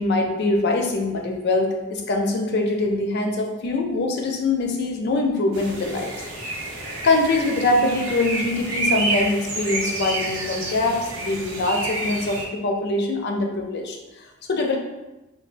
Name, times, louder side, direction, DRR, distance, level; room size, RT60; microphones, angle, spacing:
voice 1, 0.0-6.1 6.5-6.7 7.0-14.8, left 2 dB, 55° left, 2 dB, 0.4 m, -23 dB
sound 1, 5.5-12.4, right 2 dB, 80° right, 0.7 m, -29 dB
3.3 x 2.2 x 2.5 m, 1.1 s
head